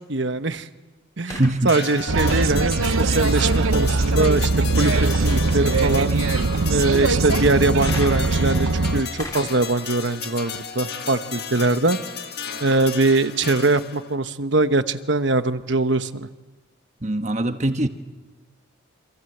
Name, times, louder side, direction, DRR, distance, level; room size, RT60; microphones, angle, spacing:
voice 1, 0.1-0.7 1.2-4.5 4.8-4.9 5.2-6.1 6.7-12.0 12.6-16.3, right 2 dB, 60° right, 11 dB, 1.1 m, -22 dB
sound 1, 1.3-3.8 7.9-11.5 12.3-12.4, left 1 dB, 15° left, 3.5 m, -41 dB
voice 2, 1.3-1.7 17.0-17.9, right 1 dB, 35° right, 7 dB, 1.4 m, -22 dB
sound 2, 1.7-14.2, left 7 dB, 50° left, 2.0 m, -34 dB
sound 3, 2.1-9.0, right 3 dB, 85° right, 0.8 m, -21 dB
28.0 x 26.5 x 8.0 m, 1.3 s
head